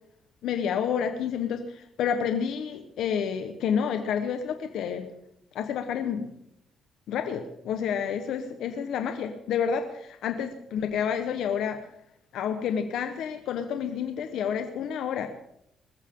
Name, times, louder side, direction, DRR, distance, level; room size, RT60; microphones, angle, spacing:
voice 1, 0.4-5.1 5.5-6.3 7.1-11.8 12.3-15.3, left 7 dB, 80° left, 6 dB, 1.3 m, -29 dB
20.5 x 14.0 x 3.9 m, 0.78 s
cardioid pair, 90°, 0 cm